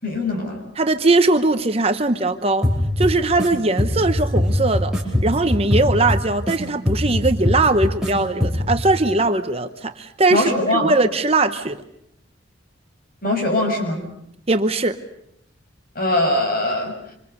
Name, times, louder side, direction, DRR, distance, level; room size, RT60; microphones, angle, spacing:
voice 1, 0.0-0.6 10.3-10.9 13.2-14.0 16.0-16.9, left 1 dB, 45° left, 3 dB, 6.1 m, -21 dB
voice 2, 0.8-2.7 3.0-4.9 5.2-11.8 14.5-15.0, right 2 dB, 30° right, 8 dB, 0.9 m, -20 dB
sound 1, 2.6-3.5 3.8-6.6 6.9-8.1 8.4-8.8, left 1 dB, 5° right, 4.4 m, -21 dB
26.5 x 26.0 x 6.7 m, 0.76 s
head